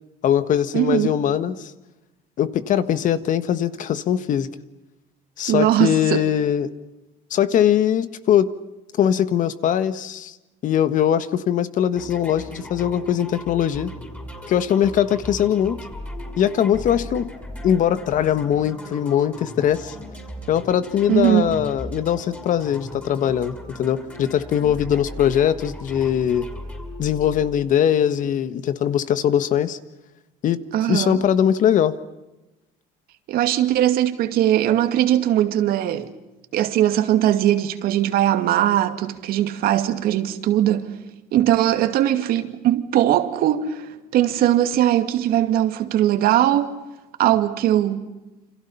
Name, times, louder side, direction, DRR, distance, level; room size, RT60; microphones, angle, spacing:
voice 1, 0.2-1.7 2.4-4.5 5.4-6.7 7.3-8.5 9.0-10.4 10.6-13.9 14.5-15.8 16.4-17.3 17.6-19.9 20.5-26.5 27.0-29.8 30.4-30.6 30.9-31.9, left 9 dB, 50° left, 1.5 m, -21 dB
voice 2, 0.7-1.1 5.5-6.2 21.1-21.5 30.7-31.2 33.3-36.1 36.5-40.9 41.3-46.8 47.2-48.1, right 12 dB, 60° right, 2.4 m, -20 dB
sound 1, 11.9-27.8, equal, 10° left, 6.0 m, -37 dB
28.5 x 27.0 x 5.7 m
cardioid pair, 130°, 17 cm